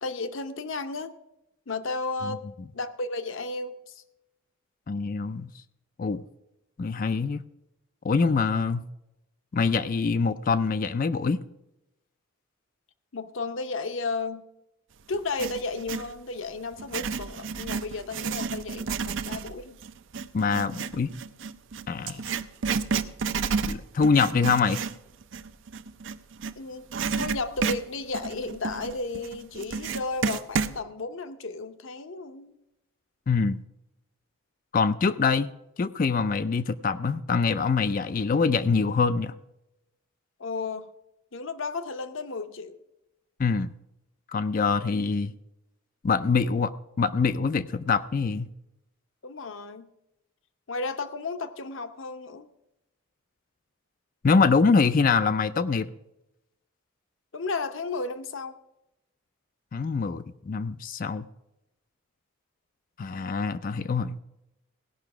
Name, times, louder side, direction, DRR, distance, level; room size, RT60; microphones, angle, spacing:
voice 1, 0.0-1.2 1.7-2.4 2.7-4.0 13.1-14.4 15.1-19.8 26.6-26.9 27.2-32.6 40.4-40.9 41.3-42.8 49.2-49.9 50.7-52.5 57.3-58.5, left 3 dB, 65° left, 10 dB, 0.8 m, -33 dB
voice 2, 4.9-5.5 6.0-6.2 6.8-7.4 8.0-8.8 9.5-11.4 20.3-21.1 21.9-22.2 23.6-24.8 33.3-33.6 34.7-35.5 35.8-39.3 43.4-43.7 44.3-45.3 46.0-46.7 47.0-48.5 54.2-55.9 59.7-61.3 63.0-64.2, left 4 dB, 40° left, 12 dB, 0.3 m, -24 dB
Writing, 15.1-16.1 16.7-26.5 26.9-30.8, right 5 dB, 60° right, 0.5 m, -31 dB
17.0 x 5.7 x 5.9 m, 0.90 s
head